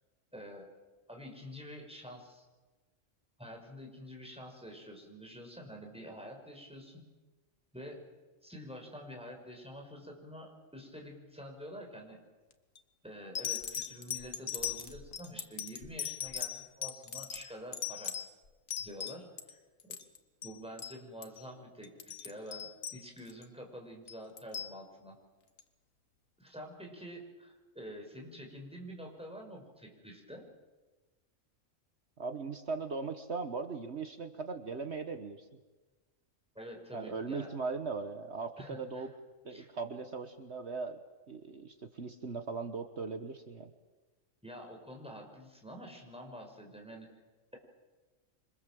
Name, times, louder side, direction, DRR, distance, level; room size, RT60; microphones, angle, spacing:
voice 1, 0.3-0.7 1.1-2.4 3.4-7.0 7.7-8.1 8.4-12.2 13.0-18.1 18.8-19.9 20.4-25.2 26.4-30.5 36.5-37.5 38.6-39.1 39.5-39.7 44.4-47.1, equal, 5° right, 1 dB, 5.9 m, -47 dB
sound 1, 12.5-12.8 13.3-19.5 19.8-20.2 20.4-20.5 20.8-21.0 21.2-21.4 21.8-23.4 24.1-24.7 25.6-25.7, left 8 dB, 80° left, 1.9 m, -39 dB
voice 2, 32.2-35.4 36.9-39.1 39.4-41.0 41.3-43.7, right 4 dB, 55° right, 8 dB, 1.6 m, -39 dB
27.5 x 25.5 x 7.7 m, 1.2 s
omnidirectional pair, 1.3 m